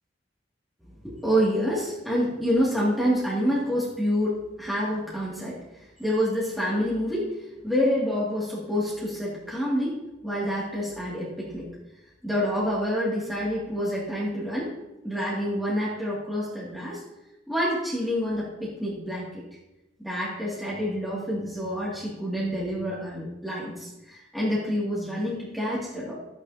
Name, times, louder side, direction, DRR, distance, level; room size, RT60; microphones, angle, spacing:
voice 1, 1.0-5.6 6.0-7.3 7.6-11.7 12.2-14.7 15.0-17.0 17.5-19.3 20.0-26.1, equal, ahead, -8 dB, 2.3 m, -27 dB
13.0 x 9.0 x 2.8 m, 0.97 s
head